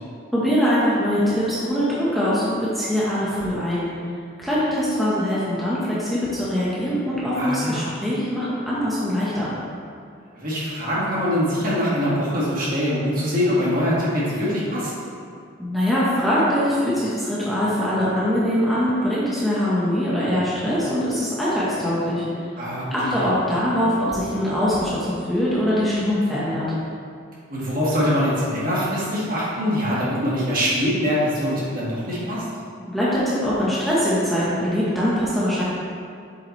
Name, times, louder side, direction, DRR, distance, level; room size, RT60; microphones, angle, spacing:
voice 1, 0.3-3.9 4.4-9.5 15.6-22.5 22.9-26.7 32.9-35.6, equal, ahead, -10 dB, 1.1 m, -22 dB
voice 2, 7.3-7.9 10.3-14.9 22.6-22.8 23.1-23.3 27.5-32.5, equal, 45° right, -7 dB, 1.9 m, -23 dB
7.8 x 6.9 x 3.2 m, 2.4 s
head